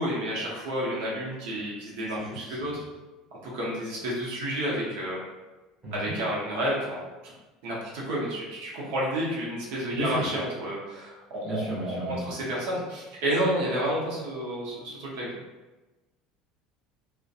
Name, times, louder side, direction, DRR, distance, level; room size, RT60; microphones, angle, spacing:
voice 1, 0.0-2.7 3.4-5.2 5.9-7.3 7.6-15.3, right 1 dB, 65° right, -5 dB, 0.8 m, -30 dB
voice 2, 2.2-2.8 5.8-6.1 9.9-10.3 11.4-12.3, equal, 5° right, -9 dB, 0.7 m, -33 dB
2.4 x 2.1 x 2.7 m, 1.1 s
cardioid pair, 175°, 0 cm